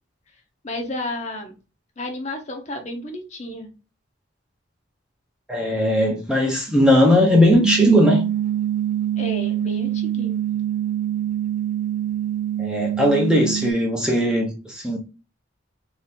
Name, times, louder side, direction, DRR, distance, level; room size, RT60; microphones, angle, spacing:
voice 1, 0.6-1.5 2.0-3.7 9.2-10.4, left 1 dB, 35° left, 0.7 m, -31 dB
voice 2, 5.5-8.2 12.6-15.0, left 1 dB, 5° right, 0.6 m, -18 dB
sound 1, 7.5-13.7, right 11 dB, 40° right, 0.4 m, -25 dB
3.1 x 2.8 x 3.4 m
head